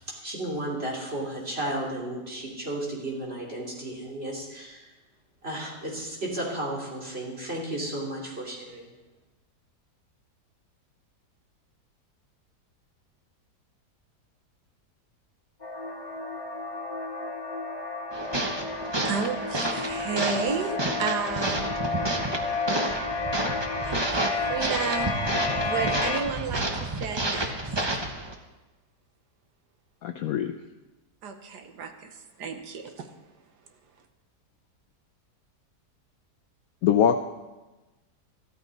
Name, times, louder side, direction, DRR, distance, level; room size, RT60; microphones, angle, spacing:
voice 1, 0.2-4.8 5.4-8.9, right 1 dB, 35° right, -3 dB, 3.3 m, -33 dB
sound 1, 15.6-26.2, left 3 dB, 25° left, 2.2 m, -31 dB
sound 2, 18.1-28.3, right 2 dB, 20° right, 0.8 m, -30 dB
voice 2, 18.8-21.7 23.8-25.2 25.6-28.1 31.2-33.1, right 5 dB, 80° right, 6 dB, 1.6 m, -33 dB
voice 3, 30.0-30.5 36.8-37.2, left 8 dB, 70° left, 7 dB, 1.0 m, -22 dB
14.0 x 13.0 x 4.1 m, 1.1 s
omnidirectional pair, 1.8 m